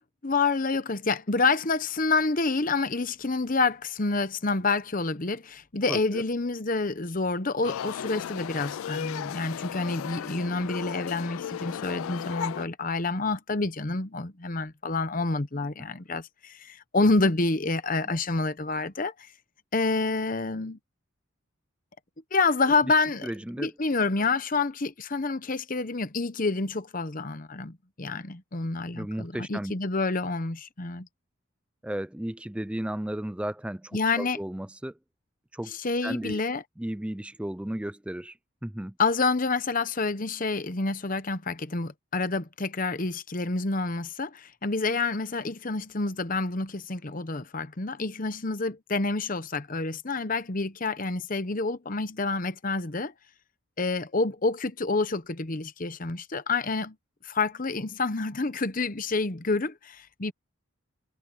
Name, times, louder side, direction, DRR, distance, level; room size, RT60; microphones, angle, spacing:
voice 1, 0.2-19.1 19.7-20.8 22.3-23.3 23.6-31.1 33.9-34.4 35.7-36.6 39.0-53.1 53.8-57.0 57.2-60.3, left 3 dB, 40° left, 0.9 m, -28 dB
voice 2, 5.9-6.2 18.1-18.2 23.2-23.7 28.9-29.7 31.8-34.9 35.5-35.8 36.0-36.4 36.8-38.3 38.6-38.9, right 1 dB, 5° right, 0.4 m, -34 dB
sound 1, 7.6-12.7, left 9 dB, 75° left, 0.3 m, -35 dB
head